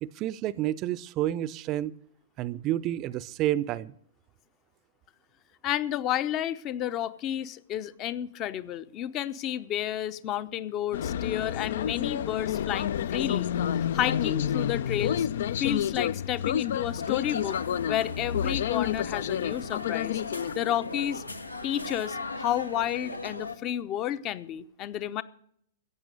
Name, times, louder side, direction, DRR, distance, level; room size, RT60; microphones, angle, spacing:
voice 1, 0.0-2.0 2.4-3.9, right 13 dB, 35° right, 20 dB, 0.6 m, -29 dB
voice 2, 5.6-15.3 15.6-17.6 17.8-20.2 20.5-21.2 21.6-25.2, left 11 dB, 30° left, 15 dB, 0.8 m, -31 dB
sound 1, 10.9-20.5, left 9 dB, 60° left, 0.5 m, -29 dB
sound 2, 16.5-23.6, left 3 dB, 85° left, 1.4 m, -38 dB
15.5 x 9.0 x 6.4 m, 0.65 s
figure-of-eight pair, 105°, 0 cm